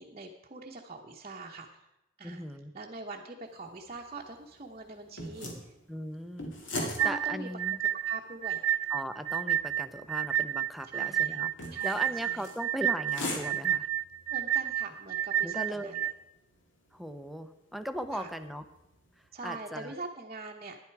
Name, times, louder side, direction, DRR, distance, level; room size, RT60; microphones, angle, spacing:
voice 1, 0.0-1.8 2.2-2.4 2.7-5.7 6.8-7.8 8.1-8.6 10.9-11.4 11.7-12.5 14.3-16.0 18.1-18.3 19.3-20.8, right 3 dB, 35° right, -1 dB, 0.9 m, -43 dB
voice 2, 2.2-2.7 5.9-6.5 7.0-7.8 8.9-13.9 15.4-15.9 16.9-18.6 19.2-19.9, equal, ahead, 9 dB, 0.6 m, -38 dB
sound 1, 3.5-19.3, left 1 dB, 65° left, 2.4 m, -44 dB
sound 2, 7.0-16.1, right 11 dB, 80° right, 0.4 m, -30 dB
12.0 x 10.5 x 4.7 m, 0.95 s
head